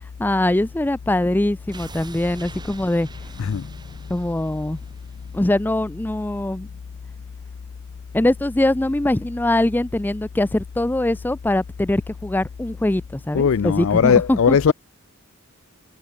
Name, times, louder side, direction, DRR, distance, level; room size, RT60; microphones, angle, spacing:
voice 1, 0.2-3.1 4.1-4.8 5.3-6.7 8.1-14.6, left 1 dB, 10° left, 0.4 m, -22 dB
sound 1, 1.7-6.6 6.9-7.0, right 2 dB, 20° right, 5.3 m, -43 dB
voice 2, 13.3-14.7, left 6 dB, 65° left, 0.4 m, -18 dB
head